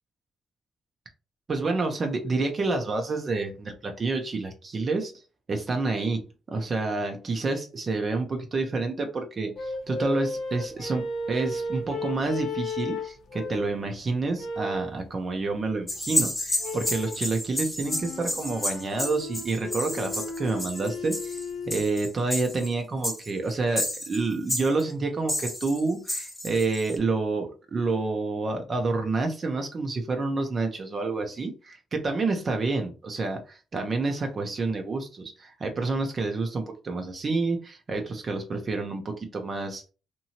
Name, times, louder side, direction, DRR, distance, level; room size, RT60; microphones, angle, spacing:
voice 1, 1.5-5.1 5.5-39.9, right 3 dB, 40° right, 4 dB, 0.6 m, -29 dB
sound 1, 9.6-13.8 14.4-15.0 16.6-17.3 17.8-21.8, left 2 dB, 65° left, 0.6 m, -34 dB
sound 2, 15.9-22.7 23.0-24.2 24.5-24.8 25.3-27.0, left 1 dB, 15° left, 1.0 m, -31 dB
2.9 x 2.6 x 2.8 m, 0.34 s
cardioid pair, 90°, 0 cm